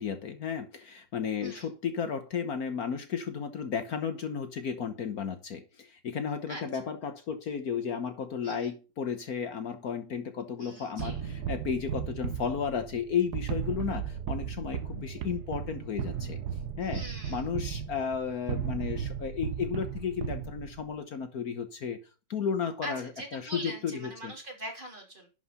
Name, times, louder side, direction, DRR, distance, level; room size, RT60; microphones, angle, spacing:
voice 1, 0.0-16.4 16.8-17.0 17.3-22.0 22.3-24.3, left 7 dB, 60° left, 8 dB, 1.4 m, -33 dB
voice 2, 1.4-1.7 6.5-6.6 8.4-8.7 10.6-11.2 16.8-17.5 22.8-25.3, right 1 dB, 30° right, 0 dB, 3.3 m, -42 dB
sound 1, 11.0-20.9, right 8 dB, 70° right, 1.3 m, -35 dB
11.5 x 5.0 x 5.5 m, 0.32 s
omnidirectional pair, 1.9 m